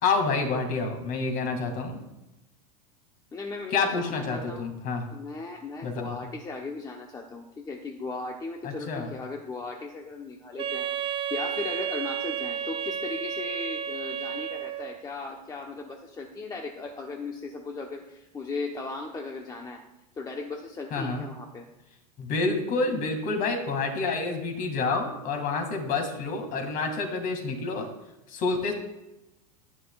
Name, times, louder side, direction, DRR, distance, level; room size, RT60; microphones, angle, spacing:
voice 1, 0.0-2.0 3.7-5.0 5.8-6.2 8.6-9.1 20.9-21.2 22.2-27.9 28.3-28.7, left 4 dB, 40° left, 5 dB, 2.3 m, -28 dB
voice 2, 3.3-4.7 5.1-19.8 20.2-21.7, left 3 dB, 15° left, 1 dB, 1.0 m, -37 dB
Wind instrument woodwind instrument, 10.6-15.0, right 8 dB, 25° right, 0.7 m, -32 dB
11.5 x 11.0 x 2.4 m, 0.97 s
supercardioid pair, 130°, 21 cm